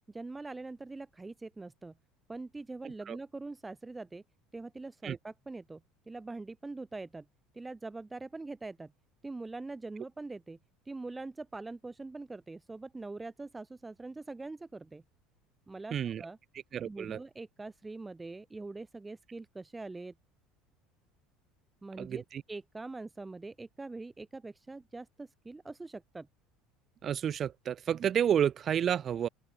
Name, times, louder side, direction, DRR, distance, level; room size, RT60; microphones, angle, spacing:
voice 1, 0.1-2.0 2.3-4.2 4.5-5.8 6.1-7.3 7.5-8.9 9.2-10.6 10.8-15.0 15.7-16.4 16.8-20.1 21.8-26.3, right 3 dB, 15° right, 3.3 m, -43 dB
voice 2, 15.9-16.2 16.7-17.2 22.0-22.4 27.0-29.3, right 9 dB, 40° right, 1.1 m, -30 dB
open air
supercardioid pair, 110°, 0 cm